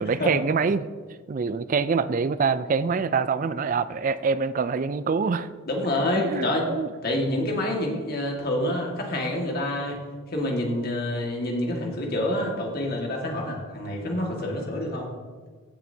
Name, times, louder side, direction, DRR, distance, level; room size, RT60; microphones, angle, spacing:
voice 1, 0.0-0.9 1.3-5.5 6.2-6.9, right 5 dB, 40° right, 14 dB, 0.3 m, -25 dB
voice 2, 5.7-6.7 7.0-10.0 10.3-15.1, left 1 dB, 45° left, 0 dB, 1.8 m, -27 dB
15.5 x 7.1 x 2.8 m, 1.5 s
head